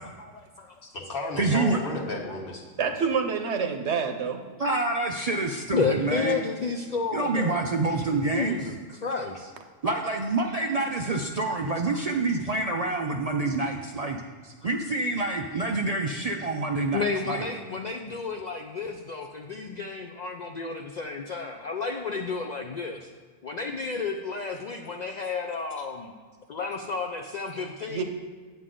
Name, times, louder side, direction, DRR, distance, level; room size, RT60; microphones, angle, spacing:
voice 1, 0.2-0.7 5.7-7.6 8.2-9.5 11.9-12.0 13.5-13.6 14.4-14.5 16.9-23.1 23.4-26.1 26.5-28.0, left 4 dB, 80° left, 3 dB, 0.4 m, -32 dB
voice 2, 0.8-2.9 7.9-8.0 10.4-10.5, left 2 dB, 45° left, 0 dB, 1.3 m, -34 dB
voice 3, 1.4-1.8 4.6-6.4 7.1-8.6 9.8-14.2 14.6-17.4, right 3 dB, 85° right, 2 dB, 0.3 m, -27 dB
voice 4, 2.8-4.4 27.9-28.0, right 6 dB, 65° right, 6 dB, 0.9 m, -27 dB
8.1 x 7.9 x 3.8 m, 1.5 s
omnidirectional pair, 1.4 m